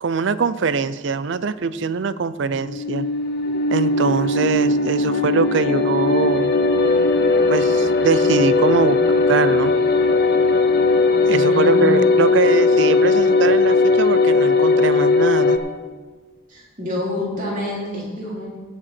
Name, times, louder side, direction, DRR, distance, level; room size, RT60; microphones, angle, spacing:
voice 1, 0.0-3.1 3.7-6.5 7.5-9.0 9.3-9.7 11.3-15.6, right 5 dB, 60° right, 15 dB, 0.5 m, -22 dB
sound 1, 2.6-15.6, left 3 dB, 45° left, 0.8 m, -18 dB
voice 2, 11.1-12.2 16.5-18.4, left 1 dB, 40° right, -6 dB, 3.9 m, -28 dB
17.0 x 7.6 x 4.4 m, 1.4 s
head